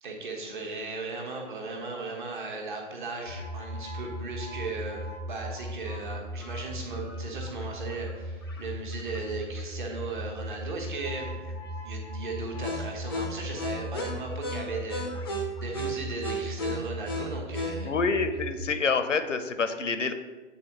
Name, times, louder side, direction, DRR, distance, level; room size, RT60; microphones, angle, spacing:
voice 1, 0.0-5.0 5.3-15.1 15.6-17.9, right 3 dB, 40° right, 0 dB, 1.2 m, -37 dB
sound 1, 3.3-18.6, equal, 20° left, 0.4 m, -36 dB
voice 2, 17.8-20.1, left 4 dB, 75° left, 9 dB, 0.6 m, -27 dB
8.7 x 3.7 x 2.9 m, 1.3 s
figure-of-eight pair, 130°, 37 cm